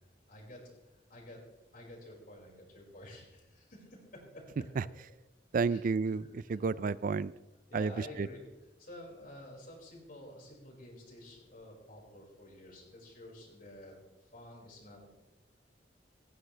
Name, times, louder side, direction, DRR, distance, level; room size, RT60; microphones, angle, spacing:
voice 1, 0.3-0.6 1.1-1.4 1.7-4.4 5.7-5.8 7.7-8.4 8.8-13.9 14.2-15.1, left 1 dB, 50° left, -2 dB, 5.4 m, -50 dB
voice 2, 5.5-7.3 7.7-8.3, right 4 dB, 50° right, 19 dB, 0.4 m, -31 dB
18.0 x 16.0 x 3.3 m, 1.0 s
head